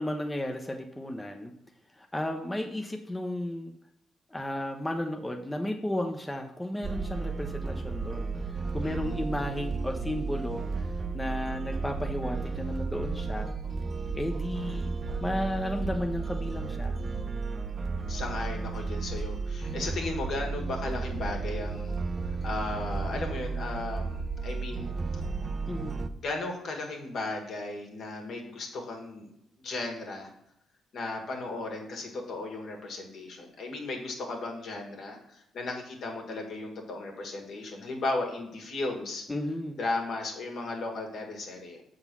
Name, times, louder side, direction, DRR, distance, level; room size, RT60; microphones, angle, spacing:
voice 1, 0.0-1.5 1.9-3.7 4.3-10.6 11.1-13.5 14.1-14.9 15.2-17.0 25.7-26.0 39.3-39.8, left 1 dB, 10° left, 4 dB, 0.7 m, -33 dB
sound 1, 6.8-26.1, right 4 dB, 35° right, 0.5 m, -33 dB
voice 2, 8.8-9.2 18.1-21.9 22.3-24.9 25.1-25.2 26.2-29.3 29.6-30.3 30.9-39.2 39.8-41.8, left 2 dB, 65° left, 2 dB, 1.8 m, -35 dB
6.8 x 3.9 x 6.0 m, 0.78 s
cardioid pair, 90°, 0 cm